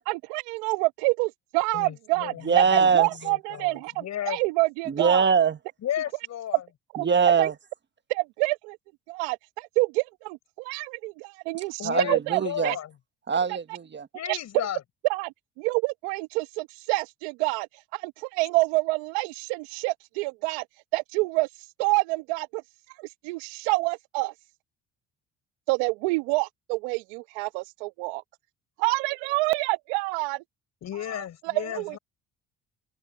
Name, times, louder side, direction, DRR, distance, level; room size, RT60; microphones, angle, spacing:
voice 1, 0.1-5.2 6.9-7.1 7.4-7.5 8.1-8.8 9.1-11.8 12.1-12.8 14.3-14.4 15.1-17.7 17.9-20.6 20.9-21.5 21.8-22.6 23.0-24.3 25.7-28.2 28.8-30.4 31.4-32.0, right 25 dB, 80° right, 1.1 m, -27 dB
voice 2, 1.7-4.4 5.8-6.6 11.8-12.9 14.1-14.8 30.8-32.0, left 11 dB, 55° left, 4.7 m, -34 dB
voice 3, 2.4-3.1 4.9-5.6 7.0-7.5 11.8-12.7 13.3-14.1, right 6 dB, 35° right, 1.4 m, -22 dB
hypercardioid pair, 65°, 32 cm